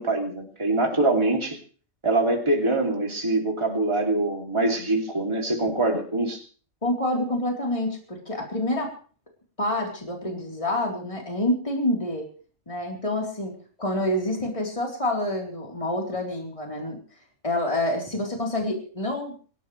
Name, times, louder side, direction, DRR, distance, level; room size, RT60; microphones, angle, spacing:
voice 1, 0.0-1.6 2.0-6.4, right 2 dB, 20° right, 0 dB, 3.0 m, -24 dB
voice 2, 6.8-8.9 9.6-12.3 12.7-13.5 13.8-17.0 17.4-19.3, left 1 dB, 25° left, -1 dB, 4.0 m, -27 dB
26.5 x 13.5 x 3.3 m, 0.42 s
omnidirectional pair, 1.4 m